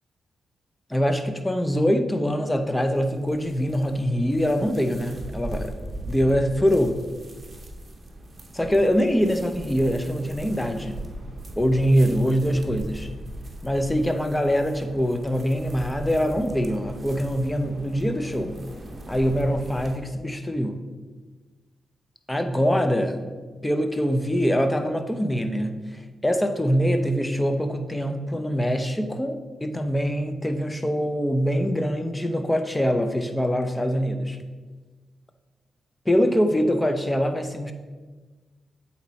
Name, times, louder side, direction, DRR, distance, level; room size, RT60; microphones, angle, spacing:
voice 1, 0.9-5.7 6.1-7.0 8.5-11.1 11.6-13.1 13.6-18.6 19.1-20.8 22.3-23.2 23.6-34.4 36.1-37.7, equal, 10° left, 7 dB, 0.7 m, -24 dB
sound 1, 2.3-20.0, right 1 dB, 35° right, 1.0 m, -39 dB
8.0 x 4.2 x 4.1 m, 1.4 s
cardioid pair, 80°, 0 cm